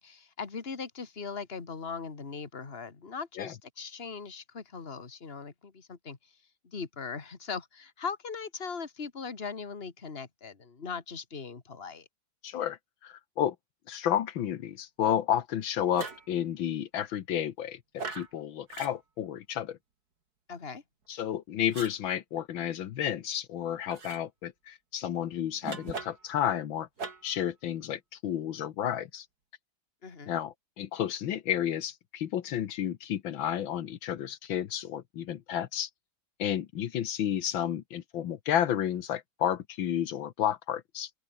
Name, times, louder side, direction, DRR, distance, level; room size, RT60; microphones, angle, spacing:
voice 1, 0.0-6.3 6.6-12.1 20.5-20.8 30.0-30.4, left 5 dB, 30° left, 2.2 m, -39 dB
voice 2, 12.4-13.6 13.9-19.8 21.1-26.9 27.2-29.3 30.3-35.9 36.4-41.1, left 10 dB, 80° left, 1.9 m, -31 dB
sound 1, 15.9-16.3 18.0-18.3 18.7-18.9 21.7-22.0 23.9-24.2 25.6-26.3 27.0-27.4, right 4 dB, 50° right, 3.3 m, -39 dB
open air
omnidirectional pair, 2.1 m